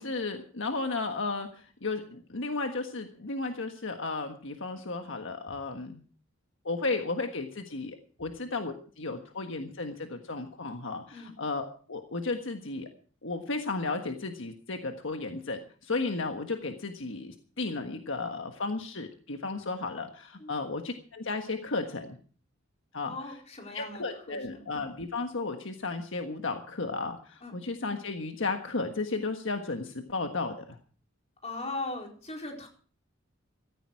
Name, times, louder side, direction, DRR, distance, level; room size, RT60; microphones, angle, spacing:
voice 1, 0.0-6.0 6.6-12.9 13.2-22.2 22.9-23.4 23.7-30.8, left 3 dB, 65° left, 5 dB, 1.5 m, -34 dB
voice 2, 23.0-24.7 27.4-27.5 31.4-32.7, left 2 dB, 35° left, 2 dB, 4.4 m, -39 dB
16.0 x 14.5 x 4.7 m, 0.42 s
head